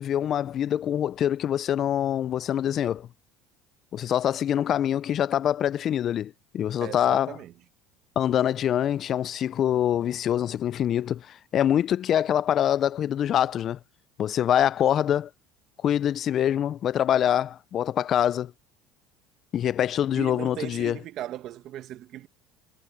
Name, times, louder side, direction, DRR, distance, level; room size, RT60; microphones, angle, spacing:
voice 1, 0.0-3.1 3.9-7.4 8.2-13.8 14.2-15.3 15.8-18.5 19.5-21.0, left 10 dB, 45° left, 0.4 m, -25 dB
voice 2, 6.8-7.5 20.1-22.3, right 13 dB, 55° right, 1.1 m, -37 dB
supercardioid pair, 100°, 0 cm